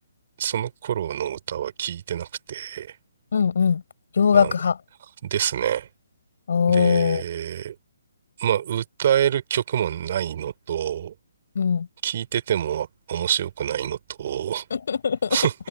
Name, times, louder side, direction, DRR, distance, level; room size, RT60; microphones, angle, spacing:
voice 1, 0.4-3.0 4.3-4.5 5.2-5.9 6.7-7.8 8.4-11.1 12.0-14.7 15.3-15.5, right 10 dB, 45° right, 5.6 m, -26 dB
voice 2, 3.3-3.8 4.1-4.8 6.5-7.2 11.6-11.9 14.7-15.4, left 6 dB, 60° left, 7.0 m, -20 dB
open air
figure-of-eight pair, 140°, 0 cm